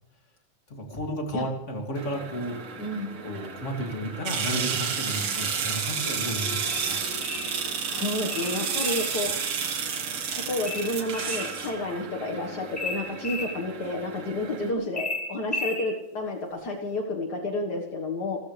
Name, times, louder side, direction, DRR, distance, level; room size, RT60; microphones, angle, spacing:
voice 1, 0.7-2.8 3.2-6.6 6.8-7.1, equal, 20° left, 2 dB, 2.4 m, -33 dB
sound 1, 1.9-14.7, right 6 dB, 50° right, 1.9 m, -32 dB
voice 2, 2.8-3.2 5.1-5.3 7.9-9.3 10.5-18.4, left 2 dB, 50° left, 1 dB, 1.2 m, -30 dB
sound 2, 5.7-8.6, left 6 dB, 85° left, 9.7 m, -46 dB
sound 3, 6.7-7.5 8.3-9.1 10.7-11.5 12.8-13.5 15.0-15.9, left 2 dB, 5° left, 6.3 m, -33 dB
28.5 x 14.0 x 3.4 m, 0.92 s
omnidirectional pair, 4.1 m